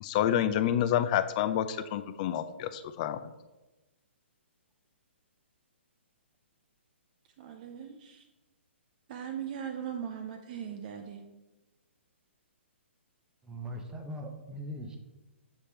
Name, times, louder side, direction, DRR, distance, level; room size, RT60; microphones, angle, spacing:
voice 1, 0.0-3.2, left 10 dB, 35° left, 12 dB, 0.4 m, -28 dB
voice 2, 7.4-8.3 9.1-11.2, right 8 dB, 40° right, 4 dB, 0.6 m, -39 dB
voice 3, 13.4-15.0, equal, 10° right, 3 dB, 0.8 m, -40 dB
7.0 x 3.4 x 4.3 m, 1.1 s
hypercardioid pair, 135°, 7 cm